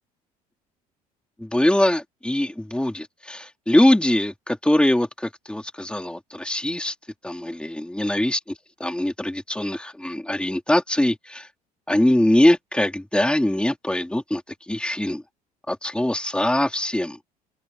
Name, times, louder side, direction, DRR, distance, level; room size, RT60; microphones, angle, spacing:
voice 1, 1.4-6.9 7.2-8.4 8.8-11.5 11.9-14.4 14.7-15.2 15.7-17.2, left 1 dB, 5° left, 3.3 m, -22 dB
open air
hypercardioid pair, 60°, 19 cm